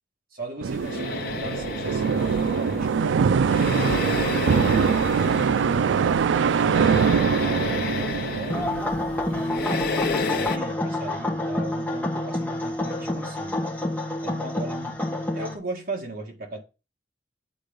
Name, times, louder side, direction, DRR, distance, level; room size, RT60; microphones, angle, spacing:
voice 1, 0.3-5.5 6.0-8.7 9.2-13.6 14.2-15.0 15.3-16.6, right 2 dB, 55° right, 1.9 m, -38 dB
sound 1, 0.6-9.4, right 6 dB, 85° right, 0.4 m, -23 dB
sound 2, 0.7-10.6, left 4 dB, 55° left, 0.7 m, -32 dB
sound 3, 8.5-15.6, left 1 dB, 10° left, 1.2 m, -28 dB
8.2 x 3.8 x 5.2 m
head